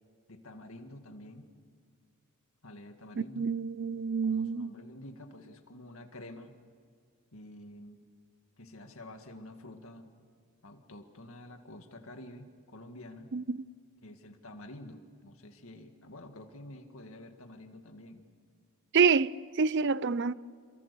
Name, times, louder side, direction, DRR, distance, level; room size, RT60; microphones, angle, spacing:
voice 1, 0.3-1.5 2.6-3.5 4.3-6.5 7.3-8.0 8.6-10.1 10.6-13.3 14.0-18.2, left 1 dB, 70° left, 2.1 m, -49 dB
voice 2, 3.2-4.7 13.3-13.6 18.9-20.3, right 5 dB, 55° right, 0.5 m, -27 dB
28.0 x 23.0 x 6.9 m
head